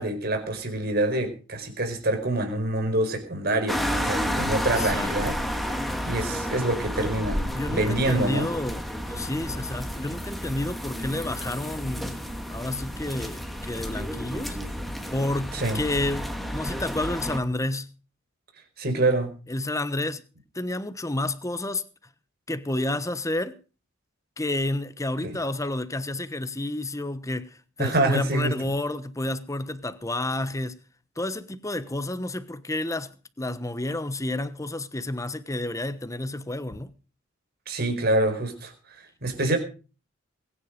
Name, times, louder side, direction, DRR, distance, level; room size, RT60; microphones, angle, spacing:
voice 1, 0.0-5.4 6.0-8.5 15.5-15.8 18.8-19.3 25.2-25.3 27.8-28.7 37.7-38.7 39.2-39.6, right 2 dB, 50° right, 4.7 m, -26 dB
sound 1, 3.7-17.4, equal, ahead, 2.1 m, -31 dB
voice 2, 4.7-5.1 7.3-12.2 12.5-14.6 15.1-17.9 19.5-20.2 20.5-21.8 22.5-23.6 24.4-30.8 31.2-36.9, left 1 dB, 15° left, 1.0 m, -30 dB
22.0 x 9.9 x 5.2 m
head